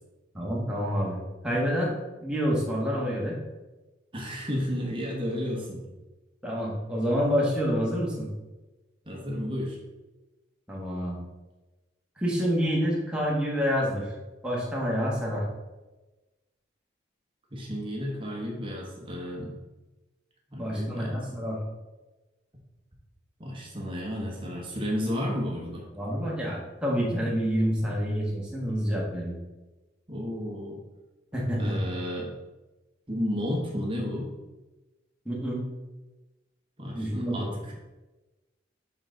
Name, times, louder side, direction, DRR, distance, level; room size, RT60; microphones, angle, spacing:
voice 1, 0.3-1.9 2.2-3.4 6.4-8.3 10.7-11.2 12.2-14.2 14.4-15.4 20.6-21.6 25.9-29.4 31.3-31.8 35.2-35.6 36.9-37.6, equal, 5° right, -4 dB, 1.4 m, -28 dB
voice 2, 4.1-5.8 9.0-9.8 17.5-19.6 20.5-21.2 23.4-25.8 30.1-30.8 31.6-32.3 33.1-34.3 36.8-37.7, equal, 25° right, -2 dB, 1.1 m, -32 dB
7.3 x 4.0 x 3.8 m, 1.1 s
head